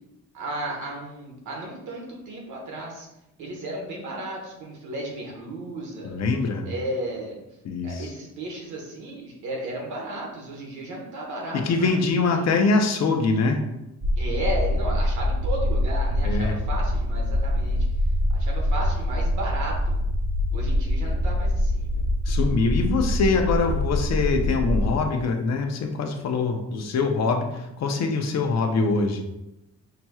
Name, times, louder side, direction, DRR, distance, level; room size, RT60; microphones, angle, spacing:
voice 1, 0.3-3.1 3.4-6.2 6.6-7.4 7.8-12.5 14.2-17.8 18.3-20.0 20.5-22.0, right 1 dB, 75° right, -1 dB, 1.4 m, -34 dB
voice 2, 6.0-6.6 7.6-8.1 11.5-13.6 16.2-16.6 22.3-29.2, left 4 dB, 60° left, 4 dB, 0.7 m, -23 dB
sound 1, 14.0-25.0, left 1 dB, 25° right, 0.8 m, -24 dB
5.8 x 2.9 x 2.3 m, 0.89 s
cardioid pair, 90°, 30 cm